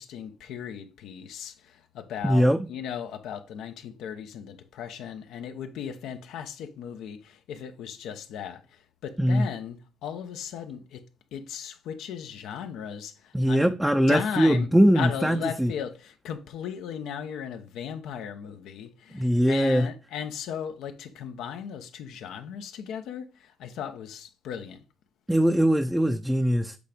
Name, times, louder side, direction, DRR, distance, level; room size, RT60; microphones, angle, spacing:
voice 1, 0.0-11.0 11.3-13.8 14.1-24.8, left 8 dB, 85° left, 0.9 m, -36 dB
voice 2, 2.2-2.6 9.2-9.5 13.3-15.7 19.1-19.9 25.3-26.8, equal, 5° right, 0.5 m, -21 dB
8.3 x 3.4 x 5.1 m
cardioid pair, 90°, 0 cm